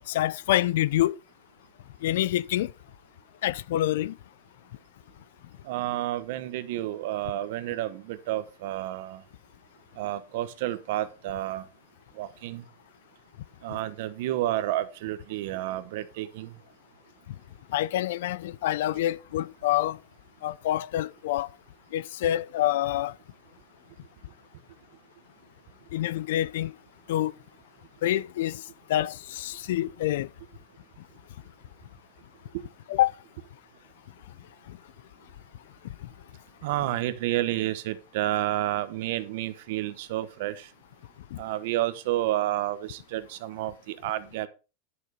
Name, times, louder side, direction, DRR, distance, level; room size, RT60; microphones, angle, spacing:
voice 1, 0.1-1.2 2.0-2.7 3.4-4.2 17.7-20.0 20.4-21.5 21.9-23.1 25.9-26.8 27.1-27.3 28.0-30.3 32.9-33.2 34.7-34.8 36.0-36.1 41.3-41.4, left 13 dB, 70° left, 0.5 m, -27 dB
voice 2, 5.6-9.2 10.0-11.7 12.2-12.6 13.6-16.6 32.5-32.6 36.6-40.7 41.4-44.5, right 14 dB, 55° right, 1.1 m, -30 dB
11.0 x 6.8 x 4.9 m
supercardioid pair, 165°, 0 cm